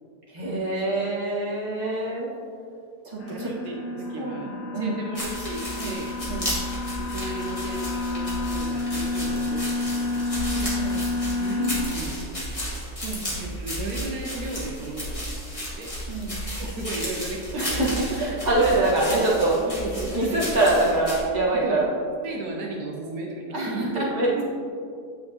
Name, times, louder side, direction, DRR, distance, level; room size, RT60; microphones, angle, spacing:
voice 1, 0.3-2.3 3.0-3.5 3.8-5.0 5.8-6.0 6.3-6.6 10.5-11.0 13.0-13.2 16.1-16.4 17.5-19.6 20.1-21.9 23.5-24.4, right 2 dB, 30° right, -7 dB, 1.7 m, -25 dB
sound 1, 3.2-11.9, left 3 dB, 65° left, 1.1 m, -30 dB
voice 2, 3.2-6.1 6.9-10.5 11.2-12.4 13.4-15.3 15.8-16.0 16.4-18.0 18.6-18.9 19.8-20.6 21.6-21.9 22.2-24.4, right 2 dB, 80° right, 0 dB, 1.2 m, -35 dB
sound 2, 5.1-21.2, equal, 20° left, 1.8 m, -33 dB
8.7 x 6.4 x 2.9 m, 2.4 s
omnidirectional pair, 1.6 m